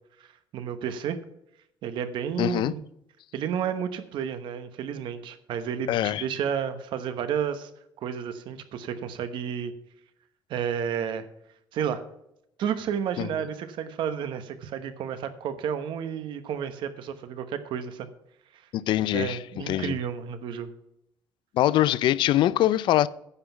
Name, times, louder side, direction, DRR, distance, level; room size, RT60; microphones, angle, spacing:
voice 1, 0.5-1.2 1.8-2.8 3.3-7.7 8.0-9.7 10.5-11.3 11.7-12.1 12.6-18.1 19.1-20.7, right 8 dB, 70° right, 1.1 m, -31 dB
voice 2, 2.4-2.7 5.9-6.2 13.2-13.3 18.7-20.0 21.5-23.1, left 13 dB, 65° left, 0.4 m, -23 dB
9.8 x 5.9 x 7.0 m
cardioid pair, 125°, 9 cm